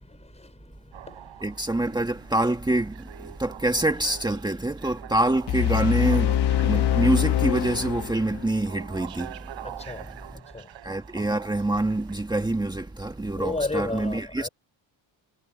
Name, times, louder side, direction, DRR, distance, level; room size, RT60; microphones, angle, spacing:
voice 1, 0.0-1.5 9.6-10.7 13.4-14.5, left 2 dB, 15° left, 4.6 m, -34 dB
sound 1, 0.9-12.5 13.2-13.3, right 12 dB, 65° right, 7.2 m, -45 dB
voice 2, 1.4-9.3 9.9-10.1 10.8-14.5, right 1 dB, 10° right, 1.8 m, -26 dB
sound 2, 5.5-8.5, left 11 dB, 55° left, 1.0 m, -24 dB
cardioid pair, 150°, 49 cm